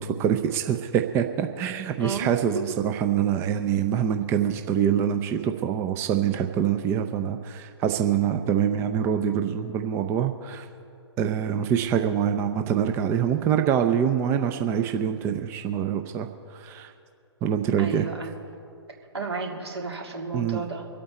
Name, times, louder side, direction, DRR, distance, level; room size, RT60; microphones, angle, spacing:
voice 1, 0.0-10.7 11.2-16.9 17.4-18.1 20.3-20.6, right 9 dB, 15° right, 6 dB, 0.5 m, -25 dB
voice 2, 17.8-18.3 19.1-20.9, right 4 dB, 70° right, 1 dB, 2.6 m, -32 dB
25.0 x 8.6 x 4.2 m, 2.5 s
figure-of-eight pair, 125°, 14 cm